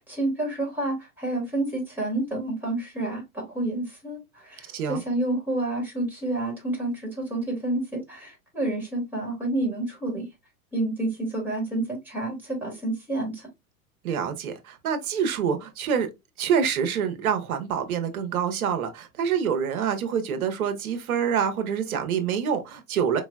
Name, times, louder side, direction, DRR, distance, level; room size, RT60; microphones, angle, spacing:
voice 1, 0.0-10.3 10.7-13.5, right 2 dB, 5° right, 2.5 m, -29 dB
voice 2, 4.7-5.0 14.0-16.1 16.4-23.2, right 7 dB, 75° right, 1.0 m, -26 dB
4.6 x 3.0 x 2.3 m
hypercardioid pair, 115°, 44 cm